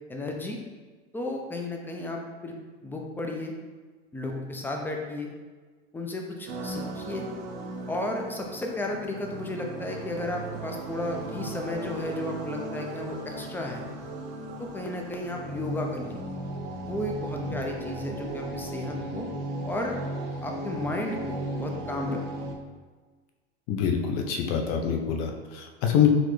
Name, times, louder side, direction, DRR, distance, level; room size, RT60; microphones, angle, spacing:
voice 1, 0.1-0.6 1.1-2.5 2.8-3.5 4.1-5.3 5.9-7.3 7.9-13.8 14.6-16.2 16.8-19.3 19.7-20.0 20.4-22.2, left 2 dB, 5° left, 2 dB, 0.4 m, -33 dB
sound 1, 6.5-22.6, right 2 dB, 65° right, 0.8 m, -36 dB
voice 2, 23.7-26.1, left 8 dB, 55° left, 3 dB, 0.6 m, -25 dB
4.0 x 2.2 x 3.1 m, 1.4 s
hypercardioid pair, 100°, 31 cm